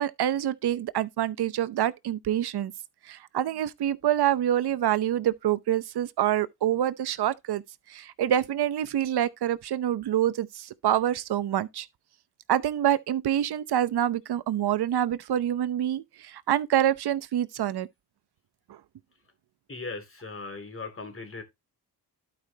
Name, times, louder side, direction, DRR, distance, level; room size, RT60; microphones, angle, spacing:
voice 1, 0.0-2.7 3.0-7.6 7.9-11.9 12.5-17.9, right 11 dB, 75° right, 0.8 m, -26 dB
voice 2, 19.7-21.4, left 3 dB, 30° left, 2.8 m, -38 dB
12.0 x 5.1 x 2.8 m
cardioid pair, 60°, 40 cm